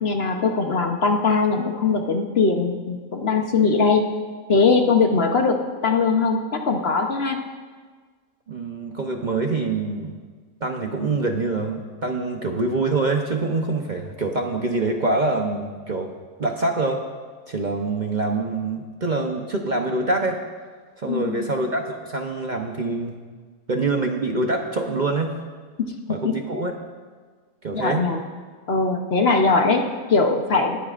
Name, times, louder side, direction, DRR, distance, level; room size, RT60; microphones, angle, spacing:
voice 1, 0.0-4.0 4.5-5.6 5.8-7.4 21.1-21.5 25.8-26.3 27.7-28.2 28.7-30.8, left 4 dB, 50° left, 3 dB, 1.0 m, -21 dB
voice 2, 8.5-10.2 10.6-16.1 16.4-17.0 17.5-20.4 21.0-23.2 23.7-25.4 26.1-26.7 27.6-28.1, right 3 dB, 40° right, 2 dB, 0.8 m, -25 dB
19.5 x 14.0 x 2.5 m, 1.5 s
omnidirectional pair, 1.5 m